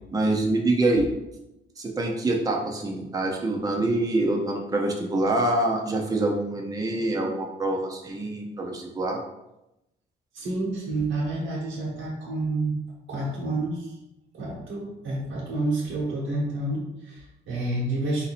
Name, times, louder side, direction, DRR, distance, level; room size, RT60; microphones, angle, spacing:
voice 1, 0.1-1.1 1.8-9.2, right 2 dB, 20° right, 0 dB, 0.7 m, -25 dB
voice 2, 10.3-12.8 13.1-13.9 14.3-18.3, right 2 dB, 75° right, -5 dB, 1.2 m, -29 dB
3.9 x 2.7 x 4.2 m, 0.91 s
cardioid pair, 90°, 20 cm